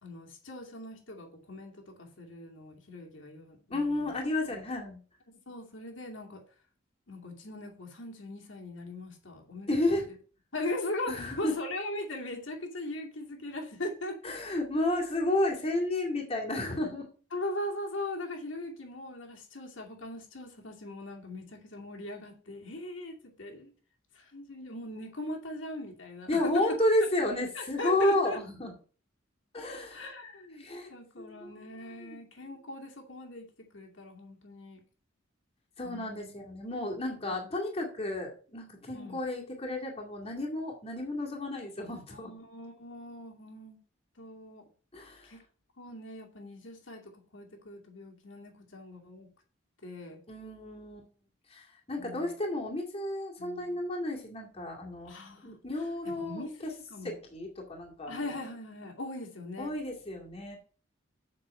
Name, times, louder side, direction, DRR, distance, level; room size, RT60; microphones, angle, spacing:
voice 1, 0.0-4.1 4.5-4.6 5.3-6.4 7.1-10.0 10.5-14.3 17.3-23.7 24.1-26.8 27.5-28.4 29.9-34.8 35.8-36.3 37.2-37.4 38.9-39.2 42.1-43.8 44.2-44.7 45.2-45.4 45.8-49.3 49.8-50.2 52.0-52.3 53.4-53.8 55.1-57.1 58.1-59.7, left 1 dB, 75° left, 1 dB, 2.4 m, -40 dB
voice 2, 3.7-5.0 9.7-10.0 11.1-11.5 14.2-17.1 26.3-28.7 29.5-30.0 30.6-30.9 31.2-32.2 35.8-42.3 44.9-45.3 50.3-51.1 51.5-55.2 55.4-56.7 57.0-58.3 59.6-60.6, left 1 dB, 30° left, 0 dB, 2.2 m, -32 dB
7.8 x 6.1 x 6.4 m, 0.40 s
head